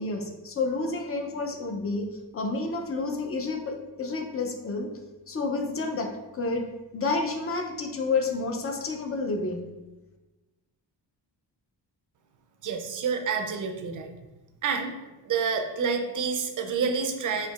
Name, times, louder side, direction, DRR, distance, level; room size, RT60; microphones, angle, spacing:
voice 1, 0.0-4.9 5.3-6.7 6.9-9.7, left 3 dB, 35° left, 4 dB, 0.4 m, -30 dB
voice 2, 12.6-14.1 14.6-14.9 15.3-17.5, right 5 dB, 50° right, 5 dB, 0.4 m, -28 dB
4.4 x 2.7 x 2.3 m, 1.1 s
wide cardioid pair, 145°, 43 cm